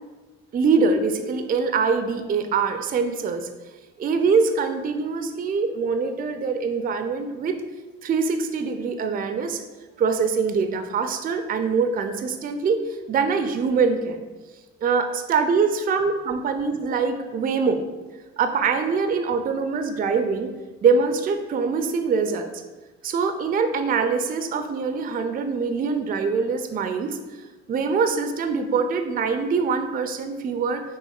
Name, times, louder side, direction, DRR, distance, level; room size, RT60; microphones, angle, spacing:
voice 1, 0.5-3.5 4.0-7.6 8.0-9.6 10.0-14.2 14.8-17.8 18.4-20.5 20.8-22.6 23.0-27.2 27.7-30.8, right 5 dB, 30° right, 7 dB, 0.4 m, -23 dB
5.3 x 3.0 x 2.4 m, 1.2 s
hypercardioid pair, 55°, 32 cm